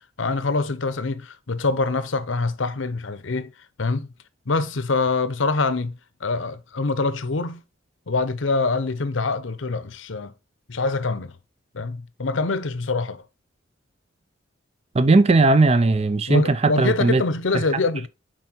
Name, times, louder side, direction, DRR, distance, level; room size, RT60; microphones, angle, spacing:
voice 1, 0.2-3.5 3.8-4.1 4.5-7.6 8.1-10.3 10.7-11.4 11.7-13.2 16.3-18.1, left 3 dB, 70° left, 0.8 m, -25 dB
voice 2, 14.9-17.2 17.5-17.6, right 3 dB, 30° right, 0.5 m, -18 dB
6.2 x 4.7 x 4.4 m
head